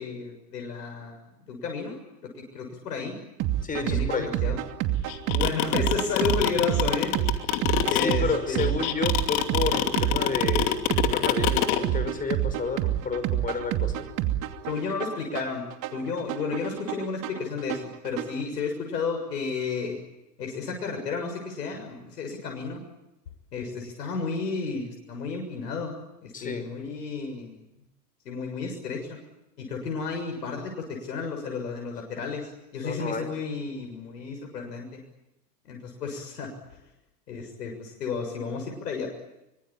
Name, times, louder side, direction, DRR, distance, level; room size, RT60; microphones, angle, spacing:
voice 1, 0.0-2.0 2.3-3.1 3.8-4.6 5.3-7.1 7.9-8.7 14.6-15.7 15.9-20.0 20.4-22.8 23.5-27.7 28.3-29.2 29.6-35.0 35.7-36.5 37.3-39.1, left 5 dB, 80° left, 2 dB, 7.1 m, -32 dB
sound 1, 3.4-18.4, right 13 dB, 40° right, 2.6 m, -28 dB
voice 2, 3.6-4.3 7.9-14.1 26.3-26.7 32.8-33.3, left 4 dB, 15° left, 9 dB, 5.7 m, -31 dB
sound 2, 5.1-11.8, left 15 dB, 55° left, 2.8 m, -24 dB
25.5 x 25.0 x 8.9 m, 0.90 s
hypercardioid pair, 120°, 48 cm